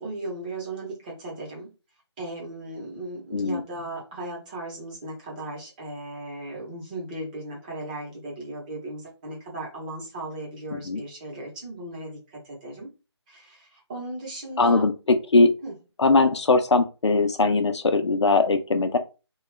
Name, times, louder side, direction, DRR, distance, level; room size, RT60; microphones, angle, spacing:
voice 1, 0.0-1.7 2.2-12.9 13.3-14.8 15.6-15.7, right 1 dB, 15° right, -3 dB, 0.9 m, -37 dB
voice 2, 14.6-15.5 16.0-19.0, left 3 dB, 75° left, 7 dB, 0.6 m, -20 dB
2.9 x 2.3 x 3.2 m, 0.30 s
figure-of-eight pair, 160°, 15 cm